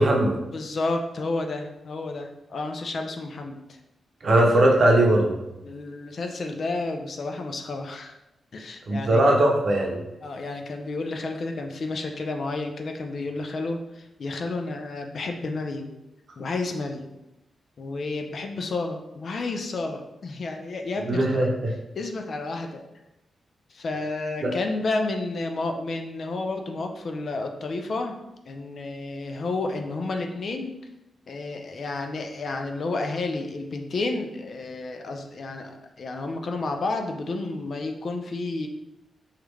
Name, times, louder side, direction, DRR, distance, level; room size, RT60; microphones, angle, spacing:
voice 1, 0.0-0.4 4.2-5.5 8.9-10.0 21.1-21.7 24.4-24.5, right 1 dB, 60° right, 0 dB, 0.7 m, -20 dB
voice 2, 0.5-3.8 4.3-4.4 5.6-8.2 8.5-9.2 10.2-15.9 16.4-17.1 17.8-21.5 22.0-22.8 23.7-28.1 28.5-30.8 31.3-38.7, left 3 dB, 65° left, 4 dB, 0.4 m, -31 dB
3.0 x 2.4 x 3.2 m, 0.93 s
supercardioid pair, 45°, 0 cm